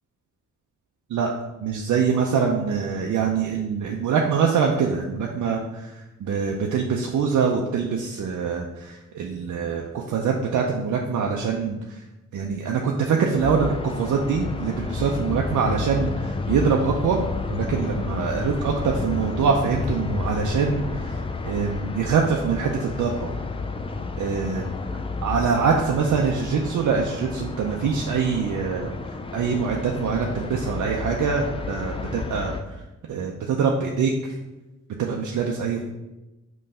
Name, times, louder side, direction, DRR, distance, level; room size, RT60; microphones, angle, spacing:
voice 1, 1.6-12.0 12.3-17.2 17.5-21.2 21.5-23.3 24.2-24.6 25.2-28.9 29.3-32.8 33.1-34.4 35.0-35.9, right 6 dB, 75° right, 1 dB, 0.6 m, -24 dB
sound 1, 13.4-32.6, left 3 dB, 20° left, 0.4 m, -31 dB
5.4 x 3.1 x 5.5 m, 1.0 s
wide cardioid pair, 125°, 30 cm